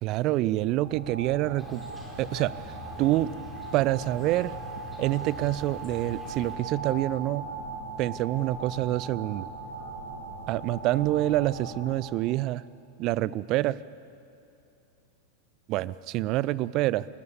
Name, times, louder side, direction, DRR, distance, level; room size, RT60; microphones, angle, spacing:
voice 1, 0.0-1.8 2.2-3.3 3.7-4.6 5.0-7.5 8.0-9.5 10.5-12.6 13.0-13.8 15.7-17.1, right 16 dB, 40° right, 20 dB, 0.5 m, -27 dB
sound 1, 0.7-11.9, right 3 dB, 75° right, 4.3 m, -39 dB
Insect, 1.6-6.6, left 2 dB, 5° left, 5.3 m, -46 dB
29.0 x 13.5 x 8.4 m, 2.7 s
figure-of-eight pair, 90°, 0 cm